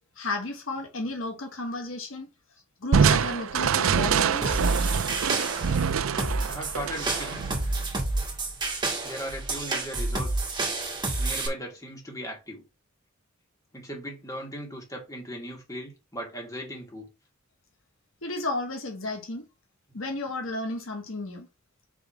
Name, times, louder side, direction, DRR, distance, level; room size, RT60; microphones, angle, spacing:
voice 1, 0.2-2.3 2.8-4.6 18.2-19.5 19.9-21.5, left 2 dB, 70° left, 1.3 m, -33 dB
Crushing, 2.9-8.3, right 6 dB, 80° right, 0.5 m, -25 dB
sound 1, 4.4-11.5, right 2 dB, 20° right, 1.8 m, -30 dB
voice 2, 6.5-7.4 9.0-10.4 11.2-12.6 13.7-17.1, equal, 15° left, 2.7 m, -38 dB
4.9 x 4.1 x 5.9 m
head